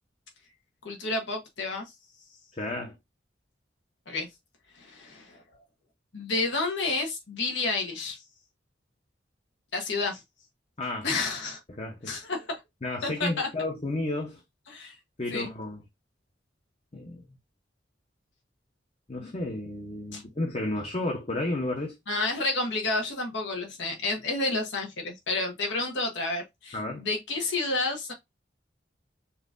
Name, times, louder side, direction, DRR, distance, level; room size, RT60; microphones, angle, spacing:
voice 1, 0.8-1.8 4.1-4.3 4.8-5.4 6.1-8.2 9.7-10.2 11.0-11.6 12.1-12.5 13.0-13.5 14.7-14.9 15.3-15.5 20.1-20.2 22.1-28.1, left 3 dB, 80° left, 1.2 m, -30 dB
voice 2, 2.5-3.0 10.8-11.1 11.7-12.2 12.8-14.4 15.2-15.8 16.9-17.3 19.1-22.0 26.7-27.1, left 2 dB, 35° left, 0.8 m, -32 dB
5.6 x 2.7 x 2.5 m
head